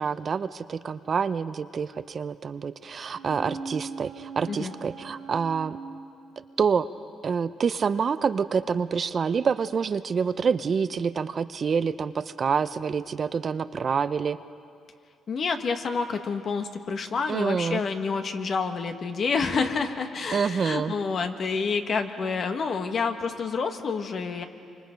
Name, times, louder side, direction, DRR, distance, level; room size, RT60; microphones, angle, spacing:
voice 1, 0.0-5.8 6.6-6.9 7.2-14.4 17.3-17.8 20.3-20.9, right 6 dB, 45° right, 13 dB, 0.6 m, -27 dB
sound 1, 3.1-6.9 7.2-7.3, right 4 dB, 70° right, 2.8 m, -40 dB
voice 2, 15.3-24.5, left 5 dB, 50° left, 6 dB, 1.5 m, -28 dB
27.0 x 25.0 x 5.2 m, 2.3 s
cardioid pair, 90°, 0 cm